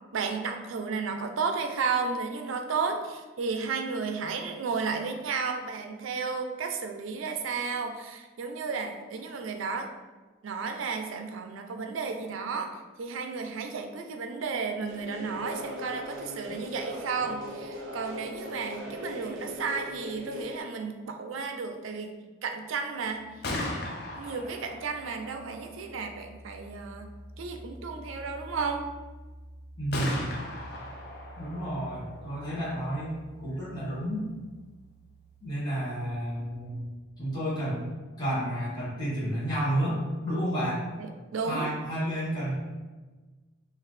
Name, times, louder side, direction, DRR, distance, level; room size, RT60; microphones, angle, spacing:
voice 1, 0.1-9.9 10.4-23.2 24.1-27.1 27.4-28.9 41.0-41.7, right 5 dB, 80° right, 5 dB, 0.4 m, -33 dB
sound 1, 14.9-20.6, left 1 dB, 60° right, 0.9 m, -39 dB
Gunshot gunfire, 23.2-37.0, left 1 dB, 55° left, 0.5 m, -41 dB
voice 2, 29.8-30.3 31.4-34.2 35.4-36.8 37.2-37.9 38.2-40.8 41.5-42.5, right 1 dB, 20° left, -11 dB, 1.3 m, -31 dB
3.8 x 2.8 x 3.1 m, 1.3 s
head